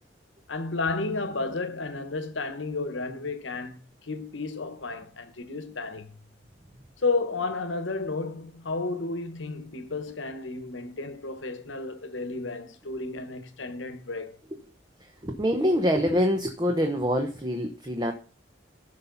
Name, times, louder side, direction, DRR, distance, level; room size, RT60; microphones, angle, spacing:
voice 1, 0.5-6.2 7.0-14.4, left 3 dB, 75° left, 1.2 m, -32 dB
voice 2, 15.2-18.1, equal, 20° right, 0.9 m, -25 dB
15.0 x 5.8 x 4.0 m
head